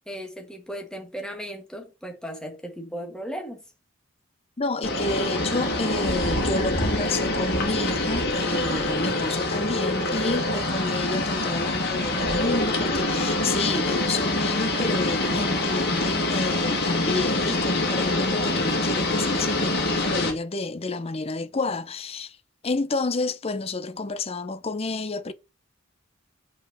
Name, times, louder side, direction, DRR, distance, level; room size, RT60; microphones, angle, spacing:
voice 1, 0.0-3.6, equal, 5° left, 1.6 m, -36 dB
voice 2, 4.6-22.4 22.6-25.3, left 3 dB, 30° left, 0.6 m, -29 dB
sound 1, 4.8-20.3, left 2 dB, 50° left, 2.2 m, -25 dB
5.6 x 4.5 x 5.5 m
head